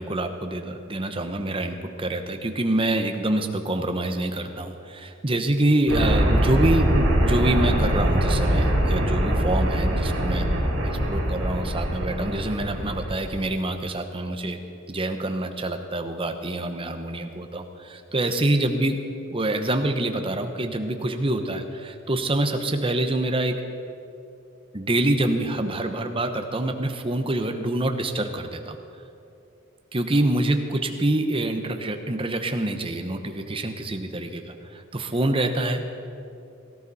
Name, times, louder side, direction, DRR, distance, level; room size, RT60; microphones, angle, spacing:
voice 1, 0.0-10.5 10.8-14.6 14.9-19.0 19.3-23.6 24.7-28.8 29.9-35.8, right 1 dB, 25° right, 6 dB, 0.9 m, -26 dB
sound 1, 5.9-13.4, equal, 70° right, 3.4 m, -23 dB
17.5 x 14.5 x 4.2 m, 2.6 s
head